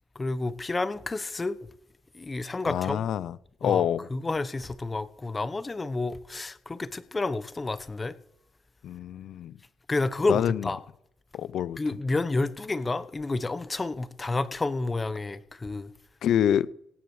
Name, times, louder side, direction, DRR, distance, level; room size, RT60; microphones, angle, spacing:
voice 1, 0.1-1.6 2.1-3.0 3.6-8.1 9.9-10.8 11.8-15.9, left 3 dB, 25° left, 1.0 m, -30 dB
voice 2, 2.7-4.1 8.8-9.5 10.3-10.7 11.3-11.8 16.2-16.7, left 10 dB, 75° left, 0.6 m, -26 dB
17.5 x 7.9 x 6.5 m
cardioid pair, 90°, 0 cm